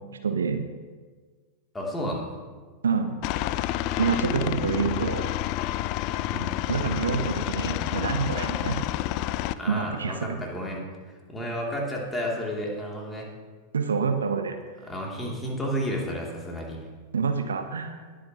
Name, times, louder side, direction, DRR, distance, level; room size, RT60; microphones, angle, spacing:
voice 1, 0.2-0.6 2.8-3.2 4.0-5.3 6.7-8.8 9.7-10.4 13.7-14.6 17.1-17.9, right 5 dB, 70° right, 7 dB, 0.9 m, -27 dB
voice 2, 1.7-2.3 6.3-6.5 9.6-10.8 11.3-13.3 14.9-16.8, equal, 10° left, -2 dB, 3.0 m, -31 dB
Aircraft, 3.2-9.5, left 14 dB, 45° left, 0.4 m, -29 dB
19.5 x 8.8 x 3.0 m, 1.5 s
figure-of-eight pair, 90°, 0 cm